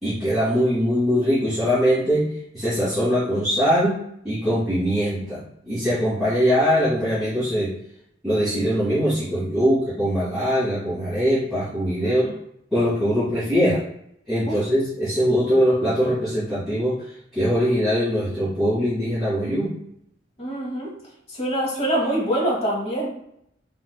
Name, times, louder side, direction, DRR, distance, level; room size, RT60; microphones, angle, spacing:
voice 1, 0.0-4.0 4.2-7.7 8.2-12.3 12.7-13.8 14.3-17.0 17.3-19.7, equal, ahead, -15 dB, 1.5 m, -22 dB
voice 2, 12.0-12.3 14.5-14.6 20.4-20.9 21.4-23.1, right 1 dB, 35° left, -3 dB, 1.0 m, -24 dB
4.2 x 2.6 x 2.2 m, 0.74 s
head